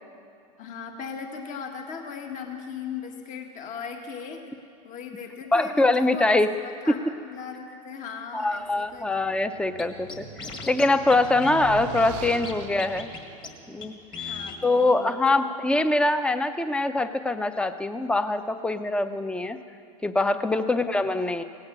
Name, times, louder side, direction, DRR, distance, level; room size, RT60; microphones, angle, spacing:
voice 1, 0.6-4.5 4.8-6.4 6.8-7.0 7.2-9.1 11.3-11.4 14.2-15.4 20.5-20.8, left 6 dB, 45° left, 3 dB, 1.7 m, -38 dB
voice 2, 5.5-6.5 6.9-7.0 8.3-10.3 10.7-13.1 13.7-14.0 14.6-19.6 20.0-21.4, left 2 dB, 5° left, 10 dB, 0.6 m, -23 dB
sound 1, 8.7-15.0, right 11 dB, 55° right, 0.6 m, -42 dB
Scratching (performance technique), 9.8-9.9 10.1-10.8 11.1-11.2 11.4-12.5 12.8-13.2 13.4-13.5 13.8-13.9 14.1-14.6, left 5 dB, 25° left, 1.8 m, -37 dB
17.5 x 8.6 x 7.4 m, 2.4 s
hypercardioid pair, 100°, 18 cm